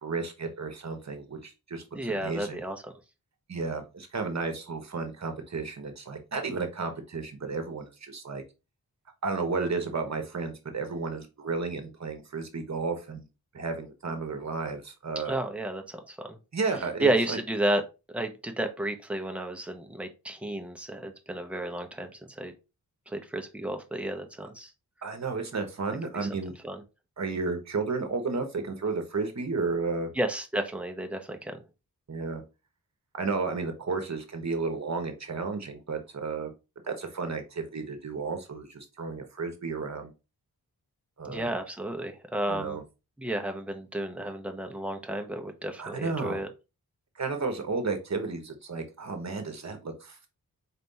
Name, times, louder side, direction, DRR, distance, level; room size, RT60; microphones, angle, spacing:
voice 1, 0.0-2.7 3.5-8.4 9.2-13.3 13.5-15.4 16.5-17.4 25.0-26.5 27.2-30.1 32.1-32.4 33.1-36.5 36.8-40.1 41.2-41.5 42.5-42.8 45.8-46.4 47.1-50.3, right 4 dB, 45° right, 6 dB, 1.0 m, -33 dB
voice 2, 1.9-2.8 15.3-16.4 17.0-17.8 18.1-22.5 23.1-24.7 26.2-26.3 26.6-26.8 30.1-31.6 41.2-42.8 43.2-46.5, right 1 dB, 5° right, 4 dB, 0.7 m, -32 dB
4.3 x 3.4 x 2.7 m, 0.28 s
wide cardioid pair, 80°, 38 cm